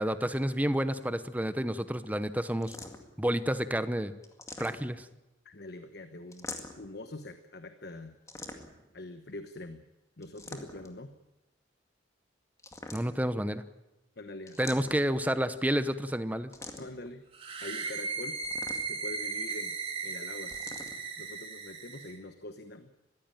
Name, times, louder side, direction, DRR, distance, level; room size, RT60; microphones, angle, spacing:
voice 1, 0.0-2.8 3.2-4.1 4.6-5.1 12.9-13.6 14.6-16.5, equal, 10° right, 12 dB, 0.8 m, -30 dB
sound 1, 2.6-3.2 4.2-5.1 6.3-6.9 8.3-8.9 10.2-11.0 12.6-13.4 14.5-15.2 16.5-17.1 18.4-19.1 20.5-21.0, left 2 dB, 15° left, 2.1 m, -44 dB
voice 2, 5.4-6.5 6.8-8.2 8.9-9.8 10.2-11.1 14.2-14.8 16.8-17.2 17.6-18.4 18.8-19.8 20.0-20.6 21.2-22.9, left 2 dB, 60° left, 8 dB, 1.2 m, -44 dB
sound 2, 17.3-22.2, right 4 dB, 30° right, 3.0 m, -36 dB
22.0 x 15.5 x 9.1 m, 0.97 s
head